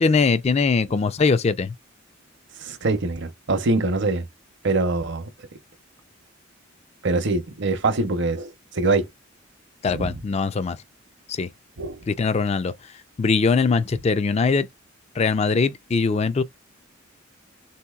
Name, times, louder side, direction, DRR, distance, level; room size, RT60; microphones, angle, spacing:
voice 1, 0.0-1.7 9.8-10.8 11.3-11.5 12.1-12.7 13.2-14.7 15.2-16.4, left 4 dB, 30° left, 0.3 m, -21 dB
voice 2, 2.6-4.3 4.6-5.3 7.0-9.1 9.9-10.2 11.8-12.0, right 3 dB, 60° right, 0.7 m, -24 dB
3.6 x 2.8 x 2.3 m
head